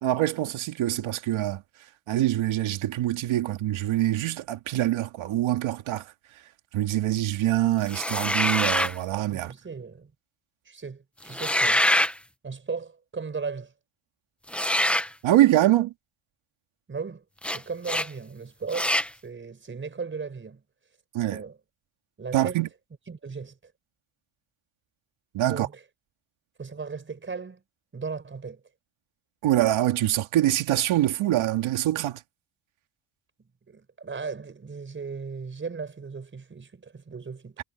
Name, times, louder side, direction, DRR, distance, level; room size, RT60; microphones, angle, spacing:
voice 1, 0.0-1.6 2.1-6.0 6.7-9.5 15.2-15.9 21.1-21.4 22.3-22.7 25.3-25.7 29.4-32.2, right 14 dB, 75° right, 2.1 m, -24 dB
sound 1, 7.9-9.0 11.3-12.1 14.5-15.1 17.4-17.6 17.8-18.1 18.7-19.1, left 1 dB, ahead, 0.7 m, -24 dB
voice 2, 9.3-10.1 10.6-11.9 12.4-13.7 16.9-19.0 19.2-20.6 21.3-21.6 22.2-22.6 23.1-23.7 25.4-25.8 26.6-27.6 27.9-28.6 33.7-37.5, right 5 dB, 25° right, 5.1 m, -36 dB
cardioid pair, 155°, 48 cm